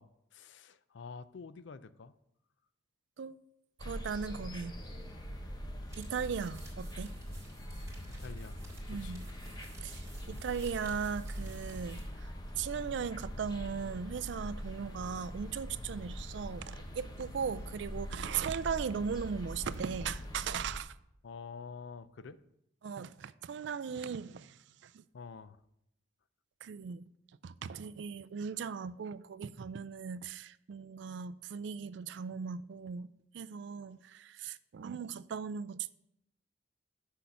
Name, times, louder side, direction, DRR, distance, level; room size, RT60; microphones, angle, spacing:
voice 1, 0.0-2.1 4.3-4.5 8.2-9.2 10.3-10.4 21.2-22.4 25.1-25.6, left 5 dB, 65° left, 0.4 m, -48 dB
sound 1, 3.8-20.8, equal, 20° left, 0.8 m, -43 dB
voice 2, 3.8-4.7 6.0-7.2 8.9-9.2 9.8-20.9 22.8-25.0 26.6-27.1 27.4-35.9, right 6 dB, 60° right, 0.3 m, -38 dB
sound 2, 5.8-12.2, right 3 dB, 15° right, 1.9 m, -56 dB
6.3 x 5.7 x 6.7 m
head